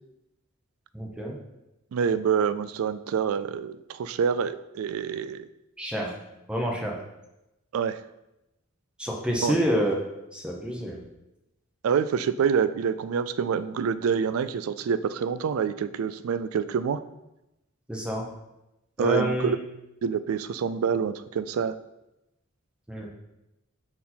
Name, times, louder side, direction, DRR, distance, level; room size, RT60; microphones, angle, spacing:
voice 1, 0.9-1.3 5.8-6.1 6.5-7.0 9.0-9.9 10.3-11.0 17.9-18.2 19.0-19.5 22.9-23.1, equal, 5° right, -1 dB, 0.7 m, -28 dB
voice 2, 1.9-5.5 7.7-8.0 9.4-9.6 11.8-17.0 19.0-19.6 20.0-21.7, right 6 dB, 90° right, 13 dB, 0.3 m, -26 dB
5.4 x 4.4 x 4.3 m, 0.92 s
head